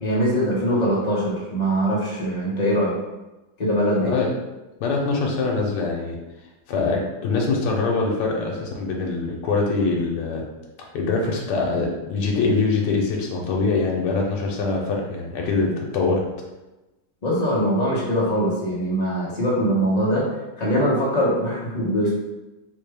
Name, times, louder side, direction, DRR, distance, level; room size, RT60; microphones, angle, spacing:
voice 1, 0.0-2.9 3.6-4.1 17.2-20.2 20.6-22.1, equal, 45° left, -7 dB, 0.5 m, -22 dB
voice 2, 4.0-4.3 4.8-6.2 6.7-10.4 10.9-16.2, left 3 dB, 90° left, 0 dB, 1.2 m, -23 dB
4.1 x 2.2 x 3.3 m, 1.0 s
omnidirectional pair, 1.8 m